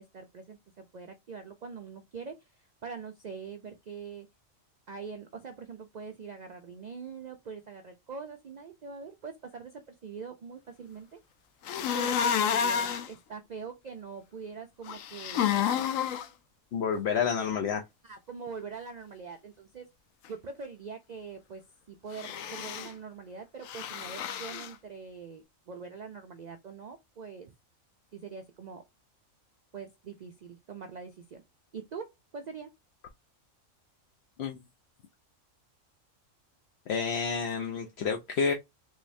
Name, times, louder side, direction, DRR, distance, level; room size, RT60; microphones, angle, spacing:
voice 1, 0.0-4.3 4.9-11.2 11.9-15.5 18.0-19.9 20.3-21.6 21.9-27.5 28.1-28.8 29.7-31.4 31.7-32.7, right 5 dB, 90° right, 0.3 m, -43 dB
sound 1, 11.7-13.1 14.9-16.3 22.1-22.9 23.7-24.7, left 8 dB, 85° left, 1.0 m, -30 dB
voice 2, 16.7-17.8 34.4-34.6 36.9-38.5, left 6 dB, 65° left, 0.8 m, -29 dB
3.8 x 3.1 x 2.6 m
omnidirectional pair, 1.4 m